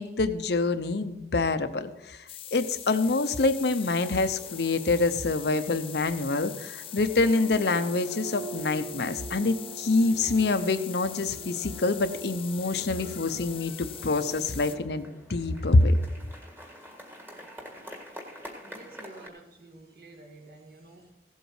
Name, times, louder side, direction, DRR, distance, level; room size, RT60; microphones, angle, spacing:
voice 1, 0.0-2.2 2.5-15.9, left 3 dB, 60° left, 10 dB, 0.7 m, -26 dB
sound 1, 2.3-14.8, left 11 dB, 30° left, 0.5 m, -42 dB
sound 2, 4.0-19.3, right 3 dB, 10° right, 1.7 m, -45 dB
voice 2, 18.6-21.1, right 2 dB, 55° right, 1 dB, 2.2 m, -50 dB
16.0 x 8.1 x 4.8 m, 0.94 s
head